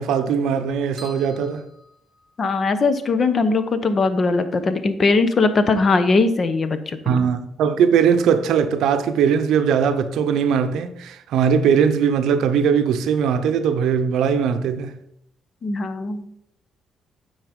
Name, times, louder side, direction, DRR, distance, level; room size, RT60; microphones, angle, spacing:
voice 1, 0.0-1.7 7.1-15.0, right 7 dB, 80° right, 0.6 m, -20 dB
sound 1, 1.0-2.7, equal, 5° right, 2.6 m, -46 dB
voice 2, 2.4-7.3 15.6-16.2, left 3 dB, 45° left, 0.8 m, -20 dB
9.2 x 4.0 x 5.2 m
cardioid pair, 90°, 0 cm